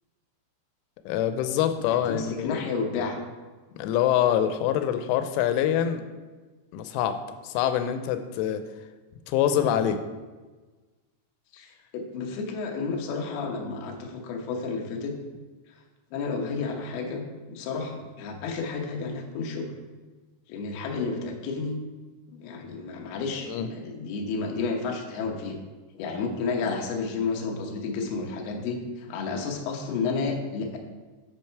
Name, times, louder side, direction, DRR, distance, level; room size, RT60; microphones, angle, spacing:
voice 1, 1.1-2.6 3.8-6.0 6.7-7.2 7.4-8.6 9.3-10.0 23.5-23.7, left 10 dB, 90° left, 9 dB, 3.1 m, -25 dB
voice 2, 1.8-3.2 11.5-15.2 16.1-19.7 20.5-21.8 22.3-25.6 26.0-30.8, left 4 dB, 70° left, 1 dB, 2.6 m, -31 dB
8.7 x 5.4 x 4.6 m, 1.3 s
omnidirectional pair, 5.4 m